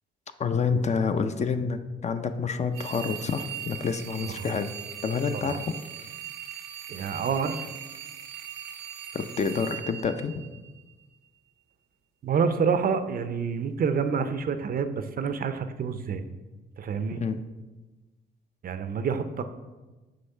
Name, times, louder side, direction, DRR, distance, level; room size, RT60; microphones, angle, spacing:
voice 1, 0.4-4.7 5.0-5.7 9.1-10.3 17.2-17.4, left 5 dB, 35° left, 9 dB, 0.5 m, -28 dB
sound 1, 2.7-10.9, right 10 dB, 85° right, 0.8 m, -40 dB
voice 2, 6.9-7.7 12.2-16.2 16.8-17.2 18.6-19.4, right 6 dB, 45° right, 10 dB, 0.5 m, -28 dB
7.9 x 3.2 x 5.5 m, 1.2 s
cardioid pair, 90°, 20 cm